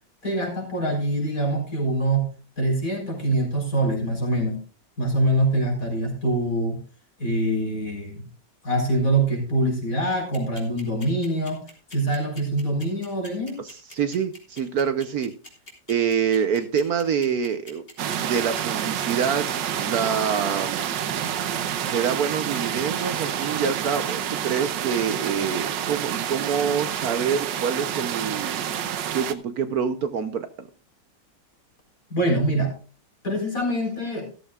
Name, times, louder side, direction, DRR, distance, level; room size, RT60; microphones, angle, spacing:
voice 1, 0.2-2.3 2.6-4.6 5.0-6.8 7.2-8.2 8.6-11.6 11.9-13.5 32.1-32.7 33.2-34.3, right 1 dB, 50° left, 1 dB, 4.7 m, -24 dB
sound 1, 10.1-24.1, left 2 dB, 30° left, 3.2 m, -44 dB
voice 2, 13.6-15.3 15.9-17.8 18.2-19.5 19.8-20.8 21.9-28.6 29.1-30.7, right 7 dB, 65° right, 10 dB, 1.2 m, -26 dB
sound 2, 18.0-29.3, right 9 dB, 85° right, 1.6 m, -28 dB
14.5 x 14.0 x 2.3 m, 0.35 s
omnidirectional pair, 1.9 m